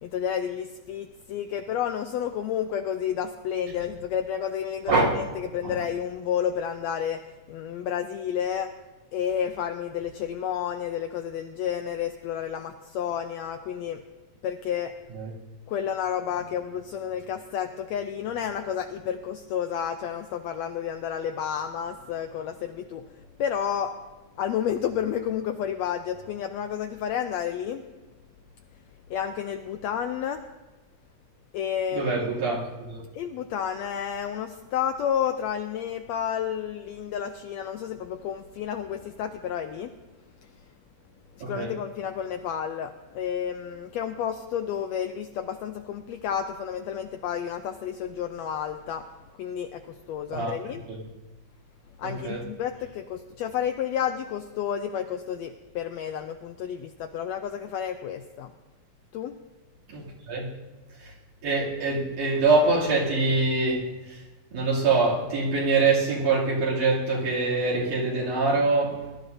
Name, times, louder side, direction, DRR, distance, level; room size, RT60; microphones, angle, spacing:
voice 1, 0.0-7.2 7.5-8.7 9.1-14.0 14.4-14.9 15.7-23.0 23.4-23.9 24.4-27.9 29.1-30.4 31.5-32.1 33.1-39.9 41.4-49.0 49.4-50.8 52.0-58.5 59.1-59.4, left 9 dB, 80° left, 6 dB, 1.6 m, -31 dB
voice 2, 31.9-33.0 41.4-41.7 50.3-51.0 52.0-52.4 59.9-60.5 61.0-61.1 61.4-64.2 64.5-69.1, right 3 dB, 85° right, -6 dB, 4.3 m, -24 dB
20.5 x 11.5 x 2.6 m, 1.2 s
omnidirectional pair, 3.5 m